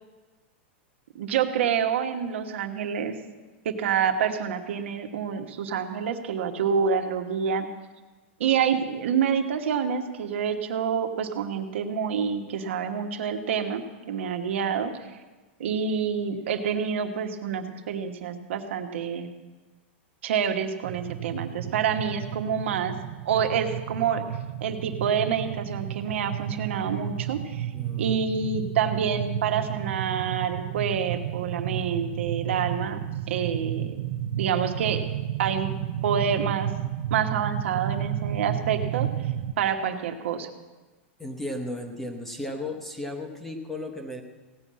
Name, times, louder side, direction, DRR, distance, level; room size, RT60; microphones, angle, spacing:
voice 1, 1.1-3.1 3.6-7.7 8.4-14.9 15.6-19.3 20.2-22.9 23.2-24.2 24.6-27.7 28.0-33.0 33.3-34.0 34.4-35.0 35.4-35.7 36.0-36.7 37.1-39.1 39.6-40.5, right 7 dB, 75° right, 5 dB, 1.3 m, -27 dB
sound 1, 20.8-39.5, right 11 dB, 55° right, 0.6 m, -32 dB
voice 2, 27.7-28.2 41.2-44.2, left 1 dB, 5° left, 4 dB, 0.8 m, -35 dB
16.5 x 5.6 x 8.6 m, 1.3 s
supercardioid pair, 175°, 7 cm